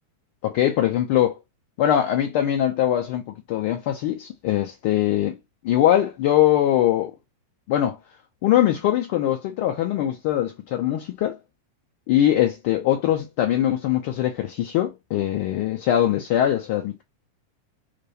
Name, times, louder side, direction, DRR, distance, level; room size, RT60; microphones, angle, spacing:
voice 1, 0.4-1.4 1.8-3.2 3.5-5.4 5.6-7.1 7.7-8.0 8.4-11.4 12.1-17.0, left 12 dB, 45° left, 0.3 m, -22 dB
2.2 x 2.1 x 2.8 m
figure-of-eight pair, 90°, 0 cm